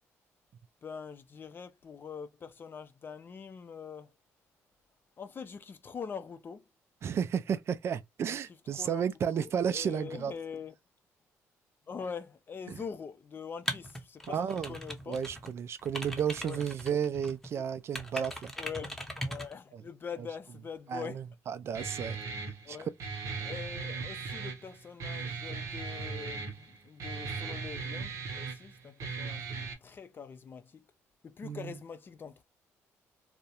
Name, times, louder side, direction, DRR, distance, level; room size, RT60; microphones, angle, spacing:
voice 1, 0.8-4.1 5.2-6.6 8.2-8.4 8.7-9.0 9.3-10.7 11.9-15.2 16.4-16.6 18.6-21.2 22.6-22.9 23.4-30.8 31.2-32.4, left 6 dB, 40° left, 0.4 m, -43 dB
voice 2, 7.0-10.3 12.7-12.8 14.3-14.8 15.1-18.5 19.7-19.8 20.9-22.2 22.7-22.8 31.4-31.7, right 8 dB, 50° right, 0.3 m, -33 dB
sound 1, 13.7-15.5 15.8-17.5 17.9-19.5, equal, 5° left, 0.7 m, -39 dB
Guitar, 21.7-29.7, right 4 dB, 70° right, 0.8 m, -38 dB
2.3 x 2.1 x 2.8 m
cardioid pair, 90°, 6 cm